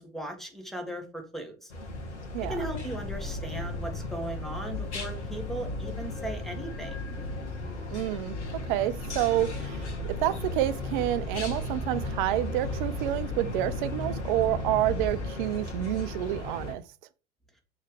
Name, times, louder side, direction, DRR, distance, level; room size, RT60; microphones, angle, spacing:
voice 1, 0.0-1.7 2.4-7.1, right 1 dB, ahead, 1.7 m, -37 dB
sound 1, 1.7-16.7, left 2 dB, 65° left, 2.6 m, -37 dB
sound 2, 2.5-15.3, left 3 dB, 25° left, 1.0 m, -38 dB
voice 2, 7.9-16.8, right 14 dB, 45° right, 0.7 m, -29 dB
6.5 x 4.8 x 5.0 m
figure-of-eight pair, 90°, 36 cm